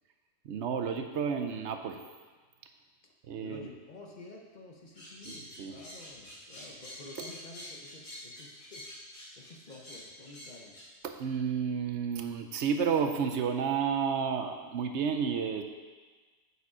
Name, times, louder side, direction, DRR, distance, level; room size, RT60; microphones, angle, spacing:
voice 1, 0.4-2.0 3.3-3.7 5.3-5.8 11.0-15.6, right 6 dB, 75° right, 6 dB, 0.9 m, -31 dB
voice 2, 3.4-8.8 9.4-10.8, left 2 dB, 45° left, 1 dB, 0.8 m, -50 dB
sound 1, 4.9-10.8, left 1 dB, 65° left, 2.5 m, -47 dB
8.0 x 5.0 x 4.9 m, 1.4 s
omnidirectional pair, 1.2 m